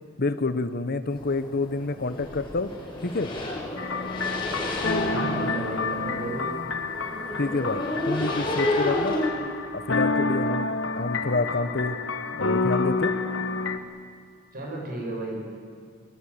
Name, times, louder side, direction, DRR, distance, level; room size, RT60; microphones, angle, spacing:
voice 1, 0.2-2.7 3.0-3.3 7.3-9.2 9.7-12.0 12.3-13.1, left 3 dB, 50° left, 11 dB, 0.9 m, -28 dB
sound 1, 1.1-9.3, left 1 dB, 25° left, 5.6 m, -31 dB
sound 2, 3.8-13.8, left 3 dB, 65° left, 1.4 m, -29 dB
voice 2, 5.1-6.5 14.5-15.4, right 1 dB, 50° right, 0 dB, 7.5 m, -33 dB
23.5 x 22.5 x 8.7 m, 2.1 s
head